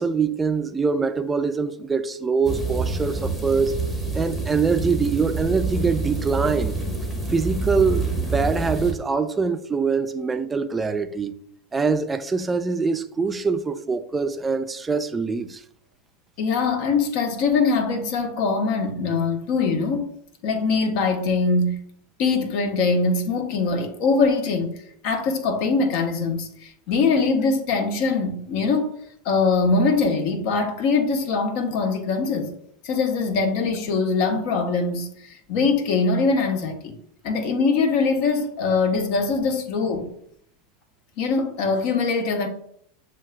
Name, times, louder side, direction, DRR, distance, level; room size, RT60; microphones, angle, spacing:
voice 1, 0.0-3.8 4.1-6.8 7.3-11.4 11.7-15.6, right 4 dB, 15° right, 0.4 m, -24 dB
sound 1, 2.4-8.9, right 3 dB, 10° left, 1.0 m, -27 dB
voice 2, 16.4-20.1 20.4-21.8 22.2-24.7 25.0-28.9 29.2-32.5 32.8-36.9 37.2-40.1 41.2-42.5, left 4 dB, 55° left, 0.8 m, -22 dB
7.1 x 2.5 x 2.2 m
hypercardioid pair, 90°, 0 cm